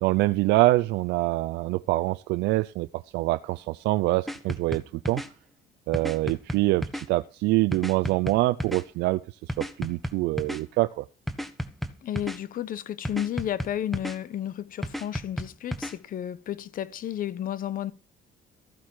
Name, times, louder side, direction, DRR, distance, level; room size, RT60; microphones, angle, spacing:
voice 1, 0.0-2.9 3.1-5.2 5.9-9.2 9.6-11.0, right 19 dB, 85° right, 0.6 m, -25 dB
sound 1, 4.3-5.3 5.9-7.0 7.7-8.8 9.5-10.6 11.3-12.4 13.0-14.2 14.8-15.9, equal, ahead, 1.3 m, -32 dB
voice 2, 12.0-17.9, left 11 dB, 55° left, 1.0 m, -32 dB
14.5 x 7.4 x 6.2 m
cardioid pair, 110°, 17 cm